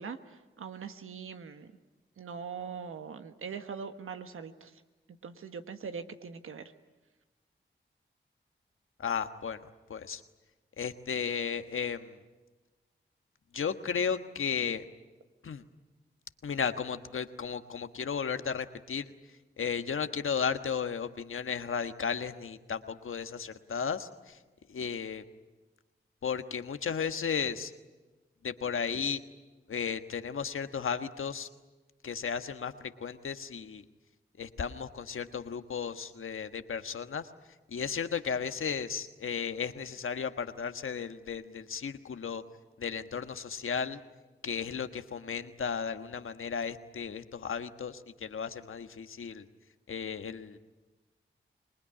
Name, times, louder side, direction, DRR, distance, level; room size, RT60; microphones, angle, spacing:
voice 1, 0.0-1.7 2.2-4.8 5.2-6.7, right 6 dB, 90° right, 8 dB, 1.3 m, -42 dB
voice 2, 9.0-10.2 10.8-12.2 13.5-14.8 15.4-15.6 16.4-19.1 19.6-24.4 24.7-25.2 26.2-27.7 28.4-29.2 29.7-31.5 32.0-33.8 34.4-37.3 37.7-42.4 42.8-44.0 44.4-49.5 49.9-50.6, left 6 dB, 75° left, 9 dB, 1.4 m, -34 dB
26.0 x 20.5 x 10.0 m, 1.2 s
cardioid pair, 45°, 21 cm